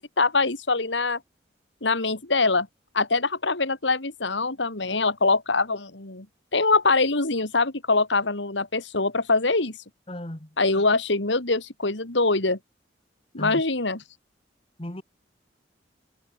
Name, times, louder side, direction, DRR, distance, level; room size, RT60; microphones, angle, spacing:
voice 1, 0.2-1.2 1.8-2.7 2.9-6.3 6.5-9.7 10.6-12.6 13.3-14.0, left 3 dB, 85° left, 2.9 m, -23 dB
voice 2, 10.1-10.6 13.4-13.6 14.8-15.0, left 1 dB, 30° left, 2.1 m, -35 dB
head